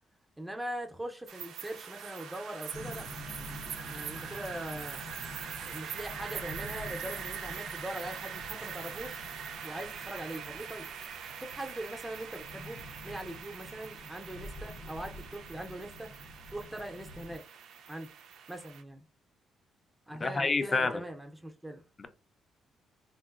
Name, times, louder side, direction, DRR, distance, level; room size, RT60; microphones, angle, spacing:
voice 1, 0.4-3.1 3.9-5.0 5.6-9.2 9.6-10.9 11.4-12.8 13.0-16.1 16.5-17.4 17.9-18.1 18.5-19.0 20.1-21.8, right 1 dB, 10° right, 0.6 m, -41 dB
sound 1, 1.3-18.8, right 7 dB, 80° right, 0.4 m, -43 dB
sound 2, 2.7-17.4, left 1 dB, 70° left, 0.8 m, -48 dB
voice 2, 20.2-21.0 22.0-22.1, left 3 dB, 35° left, 0.4 m, -28 dB
3.7 x 2.0 x 2.4 m
cardioid pair, 90°, 0 cm